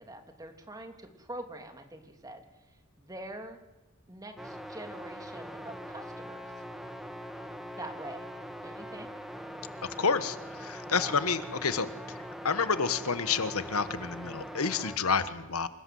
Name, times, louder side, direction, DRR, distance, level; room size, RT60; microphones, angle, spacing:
voice 1, 0.0-2.4 3.0-3.6 4.1-6.5 7.7-8.3 8.6-9.1 10.9-11.2 15.0-15.4, right 1 dB, 15° right, 5 dB, 3.1 m, -44 dB
sound 1, 4.4-15.0, equal, ahead, 2.1 m, -42 dB
voice 2, 10.0-12.2 12.4-15.7, left 5 dB, 90° left, 12 dB, 1.4 m, -29 dB
27.5 x 19.5 x 7.9 m, 1.0 s
head